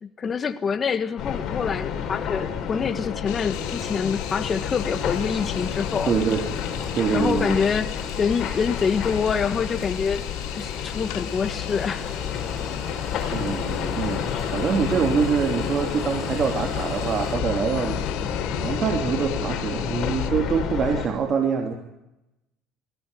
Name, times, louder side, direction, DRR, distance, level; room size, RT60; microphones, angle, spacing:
voice 1, 0.0-6.1 7.1-7.9 8.2-10.3 10.6-12.1, left 6 dB, 35° left, 10 dB, 1.4 m, -26 dB
sound 1, 1.2-21.1, left 8 dB, 55° left, 5.3 m, -30 dB
sound 2, 3.3-20.3, left 14 dB, 85° left, 2.0 m, -39 dB
sound 3, 3.5-17.4, right 2 dB, 20° right, 7.6 m, -45 dB
voice 2, 6.1-6.4 6.9-7.6 13.3-18.0 18.5-21.7, right 6 dB, 40° right, 4 dB, 3.0 m, -25 dB
24.0 x 17.5 x 9.9 m, 0.92 s
supercardioid pair, 105°, 0 cm